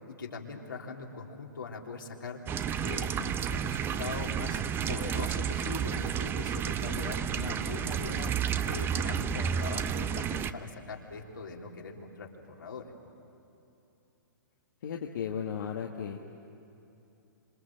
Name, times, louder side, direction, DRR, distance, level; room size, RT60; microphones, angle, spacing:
voice 1, 0.1-2.4 2.8-4.6 4.9-12.9, left 4 dB, 80° left, -1 dB, 3.5 m, -41 dB
sound 1, 2.5-10.5, right 8 dB, 20° right, 0.8 m, -31 dB
voice 2, 14.8-16.3, left 7 dB, 65° left, 1 dB, 1.7 m, -35 dB
27.5 x 26.5 x 7.6 m, 2.8 s
hypercardioid pair, 125°, 11 cm